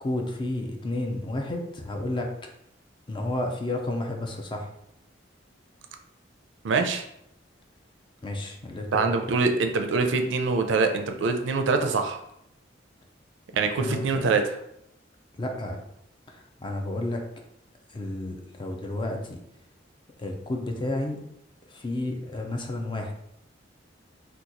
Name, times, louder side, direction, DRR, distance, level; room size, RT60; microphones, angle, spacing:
voice 1, 0.0-2.3 3.1-4.7 8.2-9.3 13.8-14.0 15.3-15.8 16.3-17.2 17.9-19.4 20.2-21.2 21.7-23.1, left 1 dB, 25° left, 3 dB, 0.4 m, -31 dB
voice 2, 6.6-7.0 8.9-12.2 13.5-14.4, right 4 dB, 70° right, 6 dB, 0.4 m, -24 dB
2.9 x 2.3 x 3.7 m, 0.78 s
head